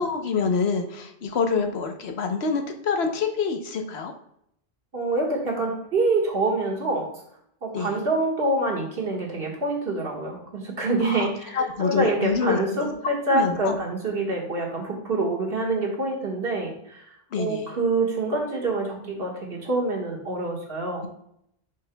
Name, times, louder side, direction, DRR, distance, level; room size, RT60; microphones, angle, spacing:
voice 1, 0.0-4.1 7.7-8.0 11.0-11.3 11.5-12.9 13.3-13.8 17.3-17.7, left 5 dB, 80° left, 5 dB, 1.1 m, -26 dB
voice 2, 4.9-7.1 7.6-17.0 17.4-21.1, right 2 dB, 65° right, -1 dB, 1.8 m, -26 dB
10.5 x 5.3 x 2.2 m, 0.73 s
omnidirectional pair, 1.1 m